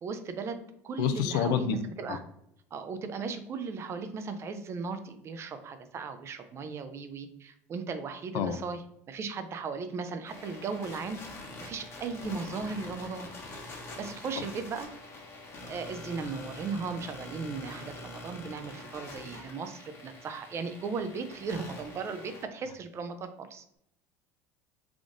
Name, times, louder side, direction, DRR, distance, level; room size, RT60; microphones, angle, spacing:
voice 1, 0.0-2.2 2.7-11.2 11.6-13.3 14.0-14.9 15.6-23.6, right 4 dB, 40° right, 9 dB, 0.5 m, -37 dB
voice 2, 1.0-1.8 2.1-2.2 8.3-8.6, left 8 dB, 70° left, 10 dB, 0.4 m, -27 dB
sound 1, 10.2-22.4, left 2 dB, 40° left, 1.1 m, -45 dB
3.5 x 2.5 x 3.6 m, 0.76 s
supercardioid pair, 95°, 7 cm